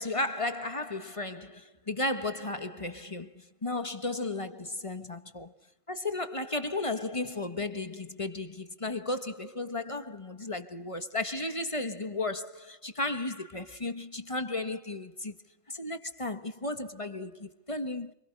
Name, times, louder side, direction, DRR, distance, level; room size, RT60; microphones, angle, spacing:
voice 1, 0.0-5.5 5.9-15.4 15.7-18.1, left 2 dB, 25° left, 1.6 m, -34 dB
29.0 x 27.0 x 6.7 m
omnidirectional pair, 1.2 m